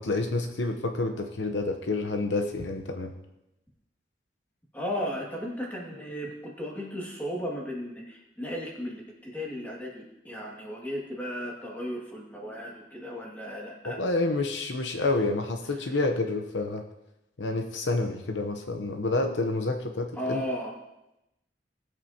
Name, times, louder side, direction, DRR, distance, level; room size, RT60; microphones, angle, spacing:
voice 1, 0.0-3.1 13.8-16.8 17.4-20.5, left 2 dB, 70° left, 5 dB, 0.9 m, -28 dB
voice 2, 4.7-14.0 20.2-20.7, equal, 10° left, -3 dB, 2.1 m, -35 dB
18.5 x 8.2 x 2.9 m, 0.93 s
head